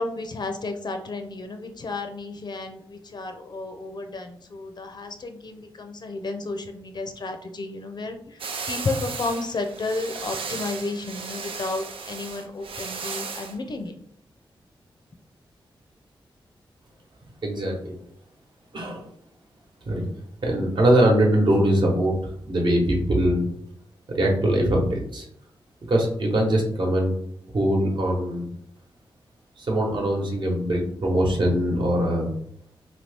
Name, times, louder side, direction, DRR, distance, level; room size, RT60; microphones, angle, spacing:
voice 1, 0.0-13.9, left 3 dB, 50° left, 6 dB, 0.5 m, -32 dB
sound 1, 8.4-13.6, right 5 dB, 80° right, 0.4 m, -35 dB
voice 2, 17.4-17.9 18.7-19.0 19.9-20.0 20.4-23.5 24.1-25.2 25.9-27.1 27.5-28.5 29.6-32.3, right 1 dB, 60° right, 0 dB, 1.0 m, -22 dB
2.8 x 2.7 x 3.4 m, 0.69 s
wide cardioid pair, 85°, 9 cm